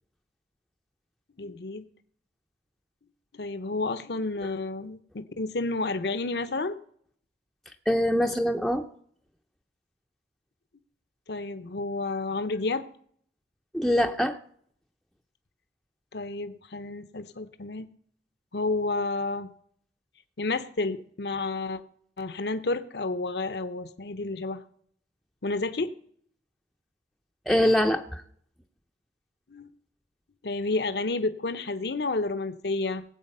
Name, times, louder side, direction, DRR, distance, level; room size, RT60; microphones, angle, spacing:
voice 1, 1.4-1.9 3.4-6.8 11.3-12.8 16.1-17.9 18.5-19.5 20.4-21.8 22.2-24.6 25.4-25.9 29.5-29.7 30.4-33.0, left 3 dB, 65° left, 12 dB, 0.8 m, -30 dB
voice 2, 7.9-8.8 13.7-14.4 27.5-28.2, equal, ahead, 4 dB, 0.6 m, -23 dB
18.5 x 8.0 x 5.5 m, 0.63 s
head